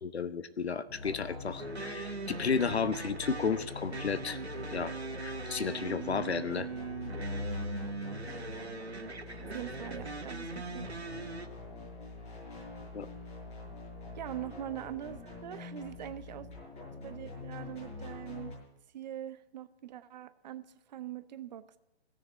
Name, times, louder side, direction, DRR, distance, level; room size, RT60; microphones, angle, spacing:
voice 1, 0.0-4.4 4.7-4.9 5.2-6.7 12.9-13.1, left 5 dB, 80° left, 13 dB, 1.0 m, -33 dB
sound 1, 0.9-18.6, left 3 dB, 20° left, 6.7 m, -44 dB
sound 2, 1.6-11.5, right 4 dB, 85° right, 1.4 m, -41 dB
voice 2, 9.5-11.0 14.2-16.5 17.0-18.6 18.9-21.8, right 12 dB, 45° right, 13 dB, 0.8 m, -42 dB
16.5 x 6.7 x 8.3 m, 0.91 s
figure-of-eight pair, 125°, 32 cm